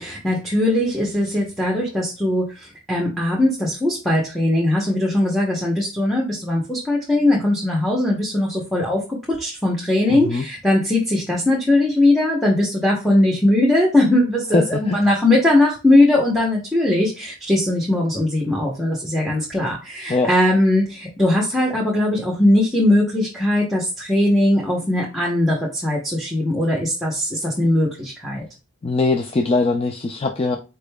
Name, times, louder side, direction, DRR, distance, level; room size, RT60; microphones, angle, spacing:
voice 1, 0.0-9.0 9.3-28.4, left 1 dB, ahead, 0.8 m, -19 dB
voice 2, 10.1-10.4 14.5-15.0 20.1-20.3 28.8-30.6, left 3 dB, 25° left, 0.3 m, -21 dB
5.0 x 4.4 x 2.2 m
head